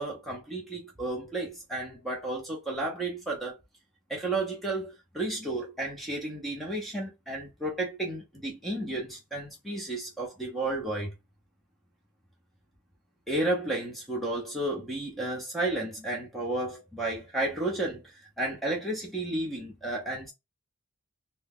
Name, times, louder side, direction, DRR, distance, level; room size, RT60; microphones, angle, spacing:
voice 1, 0.0-3.6 4.1-11.1 13.3-18.0 18.4-20.3, right 2 dB, ahead, 0.6 m, -32 dB
2.7 x 2.2 x 3.5 m
head